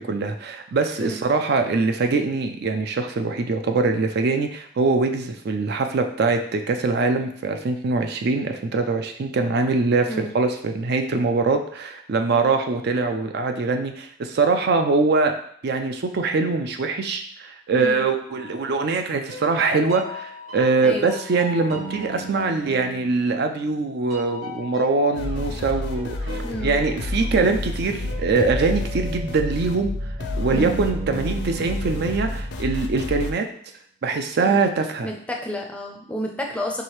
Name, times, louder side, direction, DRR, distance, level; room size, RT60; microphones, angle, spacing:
voice 1, 0.0-15.4 15.6-26.2 26.6-33.5 34.0-35.1, right 3 dB, 55° right, 6 dB, 0.4 m, -23 dB
voice 2, 10.1-10.4 17.7-18.0 20.8-21.2 26.4-26.8 30.5-30.7 34.4-34.6 35.0-36.8, left 1 dB, 5° left, 0 dB, 0.5 m, -31 dB
sound 1, 18.3-18.9 19.3-23.8 24.1-32.9, right 1 dB, 75° right, 1.3 m, -37 dB
sound 2, 25.1-33.3, left 1 dB, 55° left, 0.5 m, -29 dB
4.8 x 3.1 x 3.1 m, 0.63 s
head